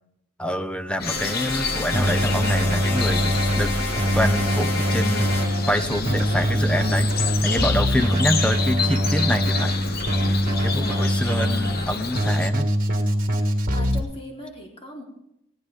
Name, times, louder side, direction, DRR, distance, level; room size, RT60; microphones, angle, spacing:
voice 1, 0.4-5.4 5.7-9.7 10.6-12.7, equal, 5° left, 10 dB, 0.6 m, -26 dB
sound 1, 1.0-12.5, left 4 dB, 45° left, 1.2 m, -30 dB
sound 2, 1.1-5.5, left 3 dB, 90° left, 4.2 m, -30 dB
Keyboard (musical), 1.9-14.0, equal, 40° right, 2.1 m, -23 dB
voice 2, 10.8-11.2 13.4-15.0, left 1 dB, 30° left, -1 dB, 3.6 m, -40 dB
19.0 x 19.0 x 3.6 m, 0.80 s
head